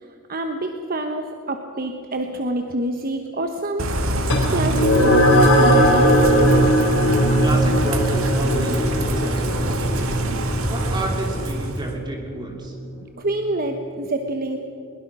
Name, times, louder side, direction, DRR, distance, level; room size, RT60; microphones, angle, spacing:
voice 1, 0.0-5.3 5.5-6.4 13.2-14.6, right 2 dB, 45° right, 5 dB, 1.1 m, -27 dB
Bird / Rain, 3.8-11.9, right 1 dB, 75° right, 1.9 m, -23 dB
sound 1, 4.3-13.1, equal, 70° left, 4.6 m, -20 dB
voice 2, 7.4-10.3 10.7-12.7, right 1 dB, 20° right, 1 dB, 3.1 m, -31 dB
21.5 x 21.0 x 6.2 m, 2.7 s
head